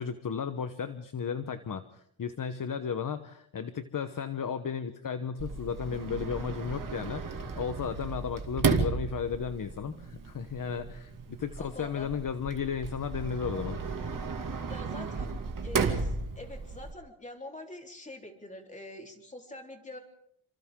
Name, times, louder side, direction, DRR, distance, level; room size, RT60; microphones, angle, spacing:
voice 1, 0.0-13.8, left 6 dB, 40° left, 10 dB, 1.1 m, -34 dB
Sliding door, 5.4-16.9, right 5 dB, 40° right, 2.4 m, -34 dB
voice 2, 11.6-12.1 14.7-15.4 15.6-20.0, left 1 dB, 15° left, 2 dB, 3.9 m, -45 dB
29.5 x 26.0 x 3.8 m, 0.73 s
wide cardioid pair, 125°, 48 cm